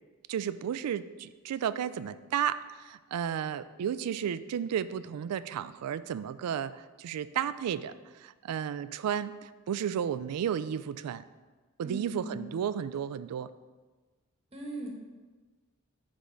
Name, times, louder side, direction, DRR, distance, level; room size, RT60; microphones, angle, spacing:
voice 1, 0.3-7.9 8.2-11.2 11.8-13.5, right 8 dB, 90° right, 16 dB, 0.3 m, -33 dB
voice 2, 11.8-12.5 14.5-14.9, right 2 dB, 25° right, 0 dB, 1.0 m, -39 dB
8.4 x 3.5 x 5.0 m, 1.3 s
head